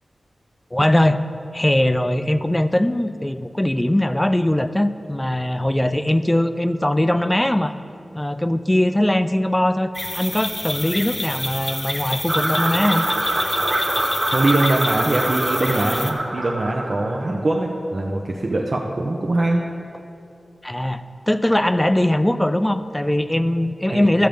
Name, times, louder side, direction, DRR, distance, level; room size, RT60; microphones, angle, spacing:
voice 1, 0.7-1.2 1.5-7.7 8.1-13.1 20.6-24.3, left 1 dB, 15° left, 11 dB, 0.5 m, -20 dB
sound 1, 9.9-16.1, left 1 dB, 30° left, 0.9 m, -28 dB
sound 2, 12.3-17.3, right 1 dB, 85° right, 1.3 m, -24 dB
voice 2, 14.3-19.6 23.9-24.1, right 2 dB, 55° right, -1 dB, 0.8 m, -22 dB
12.5 x 7.6 x 5.2 m, 2.7 s
wide cardioid pair, 65°, 0 cm